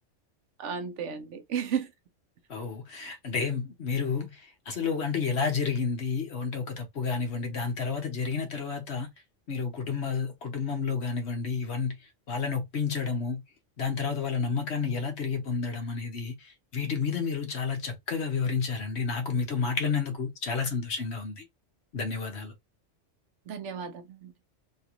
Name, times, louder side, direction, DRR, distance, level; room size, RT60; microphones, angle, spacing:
voice 1, 0.6-1.9 23.5-24.3, right 7 dB, 80° right, 1.0 m, -33 dB
voice 2, 2.5-9.1 9.5-12.0 12.3-13.4 13.8-21.4 21.9-22.5, left 5 dB, 65° left, 1.2 m, -30 dB
3.2 x 2.5 x 2.9 m
omnidirectional pair, 1.3 m